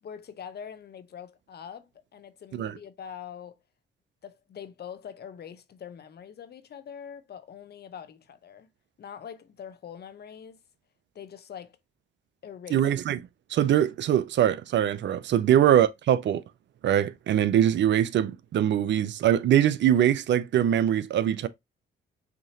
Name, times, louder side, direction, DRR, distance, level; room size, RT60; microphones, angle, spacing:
voice 1, 0.0-3.6 4.2-8.7 9.0-10.6 11.1-11.8 12.4-12.9, left 8 dB, 55° left, 0.9 m, -43 dB
voice 2, 12.7-13.2 13.5-16.4 16.8-21.5, right 10 dB, 60° right, 0.6 m, -23 dB
6.0 x 2.8 x 2.8 m
supercardioid pair, 60°, 21 cm